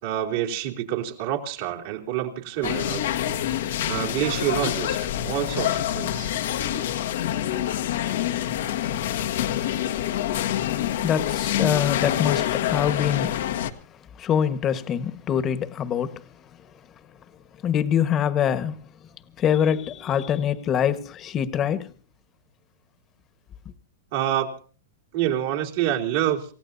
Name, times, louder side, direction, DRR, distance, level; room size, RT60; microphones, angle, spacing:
voice 1, 0.0-3.1 3.9-6.3 24.1-24.5 25.1-26.5, right 11 dB, 60° right, 3.5 m, -27 dB
sound 1, 2.6-13.7, left 11 dB, 70° left, 1.3 m, -26 dB
voice 2, 11.0-13.4 14.2-16.2 17.6-18.7 19.4-21.9, left 9 dB, 30° left, 1.5 m, -24 dB
28.5 x 16.5 x 2.8 m
hypercardioid pair, 115°, 0 cm